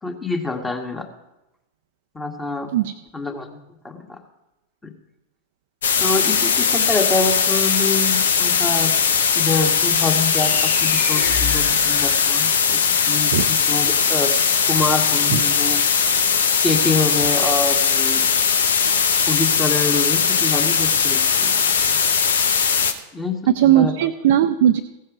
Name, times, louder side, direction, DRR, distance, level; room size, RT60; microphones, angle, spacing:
voice 1, 0.0-1.1 2.1-2.7 3.1-3.6 3.8-4.2 4.8-4.9 6.0-8.9 9.3-12.8 13.1-14.3 14.7-15.8 16.6-18.2 19.3-22.0 23.1-23.9, left 3 dB, 10° left, 4 dB, 1.8 m, -26 dB
sound 1, 5.8-22.9, left 6 dB, 65° left, 0.9 m, -19 dB
sound 2, 9.9-12.8, left 5 dB, 45° left, 1.9 m, -31 dB
voice 2, 23.5-24.8, right 11 dB, 55° right, 5 dB, 0.6 m, -17 dB
15.5 x 7.5 x 4.9 m, 0.95 s
figure-of-eight pair, 90°, 0 cm